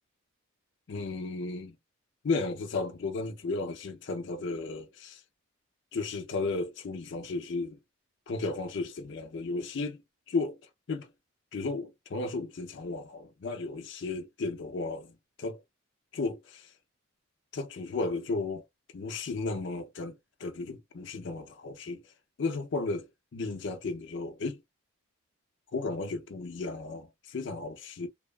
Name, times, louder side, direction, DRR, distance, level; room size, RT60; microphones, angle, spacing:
voice 1, 0.9-1.7 2.2-5.2 5.9-7.8 8.3-10.0 10.3-10.6 10.9-11.1 11.5-15.1 15.4-15.6 16.1-16.7 17.5-18.6 18.9-20.1 20.4-22.1 22.4-23.1 23.3-24.6 25.7-28.1, left 3 dB, 55° left, 0.4 m, -34 dB
2.7 x 2.2 x 2.2 m
head